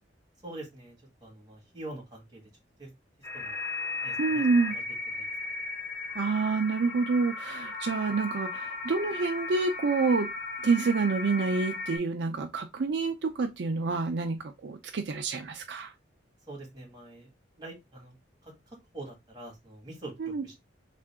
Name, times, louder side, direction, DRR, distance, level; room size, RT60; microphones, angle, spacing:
voice 1, 0.4-2.4 2.8-2.9 3.3-3.6 4.0-4.8 5.1-5.3 16.5-17.3 17.6-18.1 18.4-20.6, right 2 dB, 20° right, 1.5 m, -45 dB
sound 1, 3.2-12.0, left 3 dB, 20° left, 2.5 m, -36 dB
voice 2, 4.2-4.7 6.2-10.3 10.6-15.9 20.2-20.4, right 4 dB, 65° right, 0.4 m, -28 dB
3.6 x 2.5 x 3.3 m
head